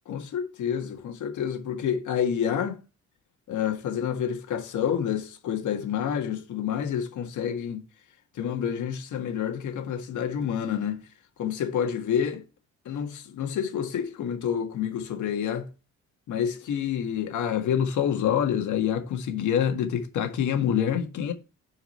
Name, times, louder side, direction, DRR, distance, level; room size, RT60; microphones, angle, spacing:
voice 1, 0.1-2.8 3.5-7.8 8.3-11.0 11.4-12.4 12.8-15.7 16.3-21.3, left 8 dB, 75° left, 1.7 m, -28 dB
7.7 x 4.8 x 4.3 m
cardioid pair, 90°, 30 cm